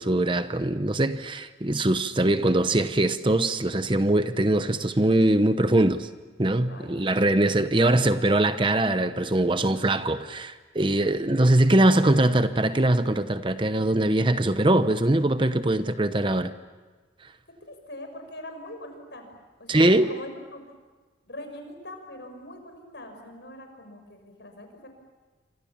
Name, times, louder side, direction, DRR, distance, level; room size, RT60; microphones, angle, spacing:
voice 1, 0.0-6.1 6.4-16.5 19.7-20.1, right 1 dB, 25° right, 0.8 m, -22 dB
voice 2, 6.7-7.8 9.5-9.9 11.9-12.2 17.7-19.3 19.6-20.7 21.2-24.9, left 1 dB, 65° left, 6.0 m, -43 dB
29.0 x 26.0 x 7.3 m
head